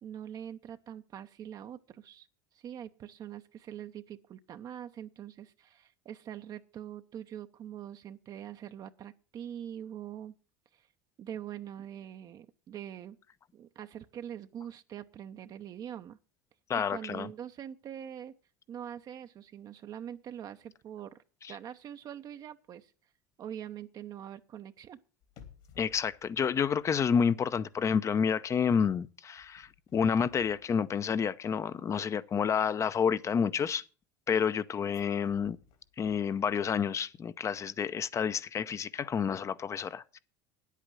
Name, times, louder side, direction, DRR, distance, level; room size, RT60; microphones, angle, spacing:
voice 1, 0.0-2.3 2.5-10.4 10.7-10.8 11.2-13.2 13.5-16.2 16.7-18.3 18.7-21.2 21.5-22.9 23.4-25.0, right 10 dB, 45° right, 0.8 m, -43 dB
voice 2, 16.7-17.3 21.4-21.6 25.8-33.8 34.3-35.6 36.0-40.2, left 7 dB, 30° left, 0.7 m, -29 dB
sound 1, 25.2-27.5 27.8-28.1 29.4-31.6 34.8-36.7 37.0-37.1, left 7 dB, 65° left, 2.9 m, -59 dB
9.6 x 8.4 x 7.5 m
hypercardioid pair, 85°, 9 cm